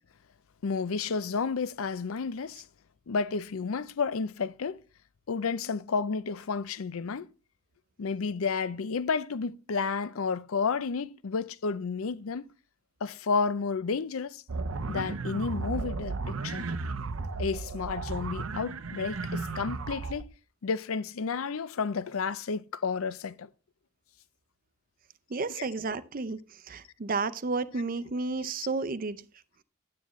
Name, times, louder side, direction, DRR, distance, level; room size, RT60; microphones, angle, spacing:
voice 1, 0.6-2.6 3.1-4.8 5.3-7.3 8.0-12.5 13.0-14.4 14.9-16.7 17.4-20.3 20.6-23.5 25.5-25.7, left 5 dB, 80° left, 0.5 m, -31 dB
sound 1, 14.5-20.2, right 3 dB, 75° right, 0.7 m, -34 dB
voice 2, 25.3-26.4 26.7-29.2, right 3 dB, 40° right, 0.6 m, -31 dB
10.5 x 9.5 x 3.1 m
head